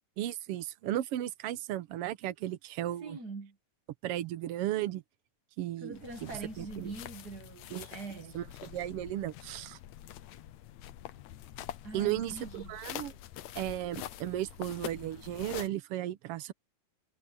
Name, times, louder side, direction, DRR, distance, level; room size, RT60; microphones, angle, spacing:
voice 1, 0.2-3.2 4.0-5.0 5.6-5.9 6.2-6.3 6.6-6.9 7.7-7.9 8.3-9.8 11.9-13.1 13.5-16.5, right 13 dB, 75° right, 1.3 m, -35 dB
voice 2, 3.0-3.6 5.8-8.4 11.8-12.8, right 3 dB, 40° right, 1.6 m, -43 dB
sound 1, 5.9-15.7, left 12 dB, 70° left, 2.0 m, -45 dB
omnidirectional pair, 3.8 m